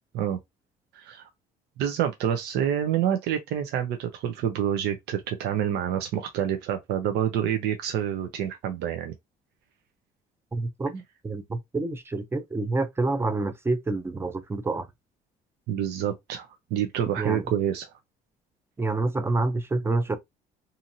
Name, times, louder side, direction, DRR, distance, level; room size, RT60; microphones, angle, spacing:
voice 1, 0.9-1.3 1.8-9.1 15.7-17.9, right 9 dB, 80° right, 0.6 m, -27 dB
voice 2, 10.5-14.9 17.2-17.5 18.8-20.2, right 2 dB, 15° right, 0.5 m, -28 dB
2.8 x 2.6 x 2.6 m
cardioid pair, 110°, 17 cm